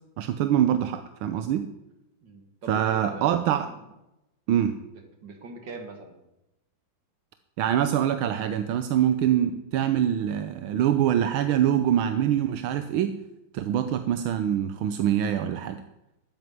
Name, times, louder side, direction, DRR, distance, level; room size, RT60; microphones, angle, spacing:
voice 1, 0.2-1.7 2.7-3.7 4.5-4.8 7.6-13.1 13.5-15.8, right 10 dB, 85° right, 10 dB, 1.6 m, -24 dB
voice 2, 2.2-3.8 4.9-6.1, right 3 dB, 60° right, 5 dB, 2.9 m, -43 dB
13.0 x 9.2 x 9.6 m, 0.93 s
omnidirectional pair, 2.2 m